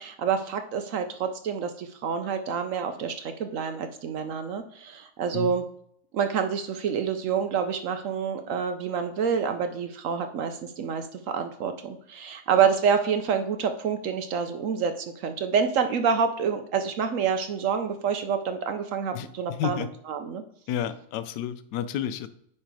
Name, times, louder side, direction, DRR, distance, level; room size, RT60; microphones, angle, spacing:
voice 1, 0.0-5.6 6.1-20.4, right 6 dB, 70° right, 7 dB, 0.8 m, -27 dB
voice 2, 19.1-19.9 20.7-22.3, left 10 dB, 75° left, 12 dB, 1.1 m, -31 dB
9.7 x 3.3 x 4.7 m, 0.67 s
omnidirectional pair, 2.0 m